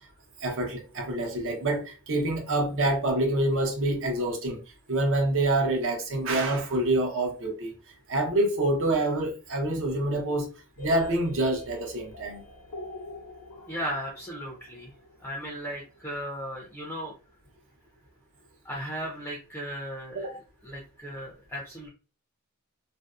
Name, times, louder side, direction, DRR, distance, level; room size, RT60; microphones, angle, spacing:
voice 1, 0.4-4.6 4.9-7.7 8.1-10.5 10.8-12.4 20.1-20.4, right 1 dB, 60° right, 0.7 m, -26 dB
sound 1, 10.8-16.5, left 1 dB, 75° left, 0.7 m, -45 dB
voice 2, 13.7-14.9 15.2-17.1 18.6-20.3 20.6-21.9, equal, 5° left, 0.5 m, -36 dB
2.6 x 2.0 x 2.3 m
head